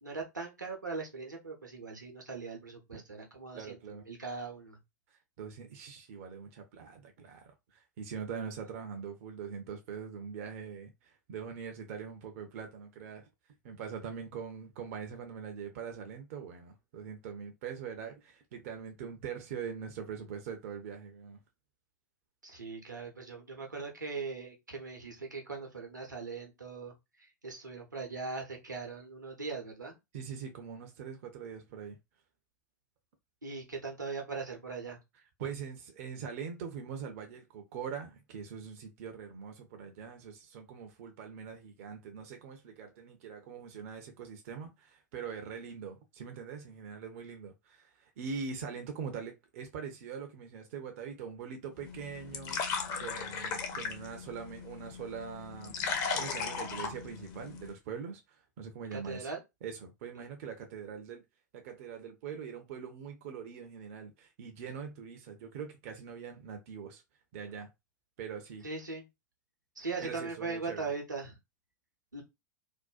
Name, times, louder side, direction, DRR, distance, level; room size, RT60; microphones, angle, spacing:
voice 1, 0.0-4.8 22.4-26.9 27.4-30.0 33.4-35.0 58.9-59.4 60.1-60.2 68.6-69.1 69.8-71.4 72.1-72.2, right 4 dB, 85° right, 0.7 m, -40 dB
voice 2, 3.5-4.0 5.1-13.3 13.6-21.4 30.1-32.0 35.4-55.8 56.1-59.3 59.6-61.2 61.5-67.0 67.3-67.7 68.2-68.7 69.8-70.9, right 6 dB, 50° right, 0.5 m, -43 dB
sound 1, 51.8-57.7, left 5 dB, 35° left, 0.5 m, -37 dB
2.5 x 2.1 x 2.3 m
figure-of-eight pair, 90°, 10 cm